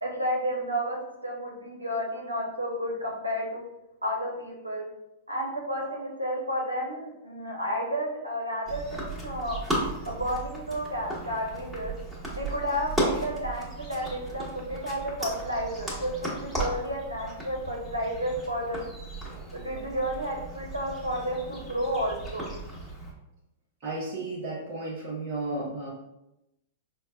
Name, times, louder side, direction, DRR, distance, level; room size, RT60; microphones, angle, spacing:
voice 1, 0.0-3.6 4.0-4.8 5.3-9.6 10.1-11.9 12.3-18.9 19.5-22.5, equal, 85° right, -1 dB, 0.7 m, -31 dB
sound 1, 8.6-23.1, right 1 dB, 5° right, 1.2 m, -35 dB
voice 2, 23.8-25.9, right 2 dB, 40° right, -6 dB, 0.8 m, -33 dB
5.2 x 2.1 x 2.3 m, 0.90 s
figure-of-eight pair, 100°, 0 cm